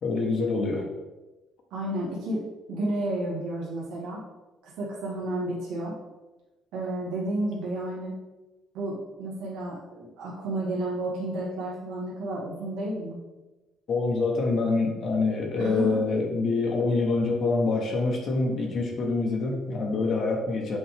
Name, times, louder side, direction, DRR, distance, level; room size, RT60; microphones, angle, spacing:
voice 1, 0.0-0.9 13.9-20.8, left 3 dB, 50° left, 1 dB, 1.1 m, -26 dB
voice 2, 1.7-2.4 2.7-4.2 4.6-6.0 6.7-8.1 8.7-13.2 15.6-16.0, right 1 dB, 85° right, -6 dB, 1.9 m, -31 dB
7.2 x 4.4 x 3.5 m, 1.1 s
cardioid pair, 120°, 0 cm